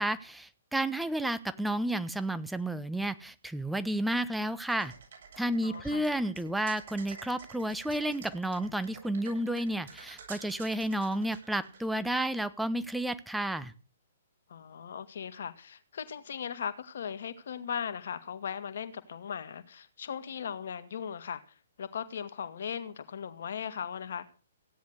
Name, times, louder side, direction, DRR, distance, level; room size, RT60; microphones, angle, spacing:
voice 1, 0.0-4.9 5.4-13.7, right 1 dB, 5° right, 1.1 m, -31 dB
sound 1, 4.7-12.4, right 6 dB, 60° right, 7.6 m, -50 dB
voice 2, 5.6-6.1 14.5-21.4 21.8-24.2, left 7 dB, 60° left, 2.0 m, -38 dB
16.5 x 10.5 x 6.6 m
figure-of-eight pair, 120°, 0 cm